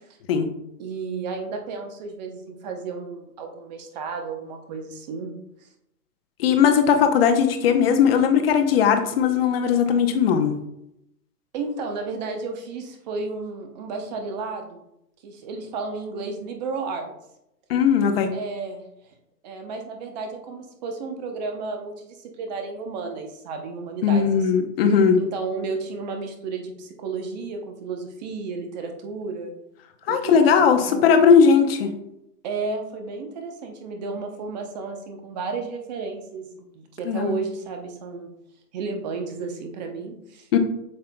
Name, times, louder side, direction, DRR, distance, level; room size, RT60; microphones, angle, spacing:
voice 1, 0.8-5.3 5.6-5.7 11.5-14.8 15.2-17.1 18.3-19.2 19.4-24.4 25.2-29.5 30.1-31.1 32.4-38.3 38.7-40.5, right 4 dB, 30° right, 4 dB, 0.7 m, -32 dB
voice 2, 6.4-10.5 17.7-18.3 24.0-25.2 30.1-31.9 37.1-37.3 40.5-40.6, left 7 dB, 40° left, 6 dB, 0.8 m, -18 dB
7.7 x 5.6 x 2.2 m, 0.83 s
hypercardioid pair, 145°, 47 cm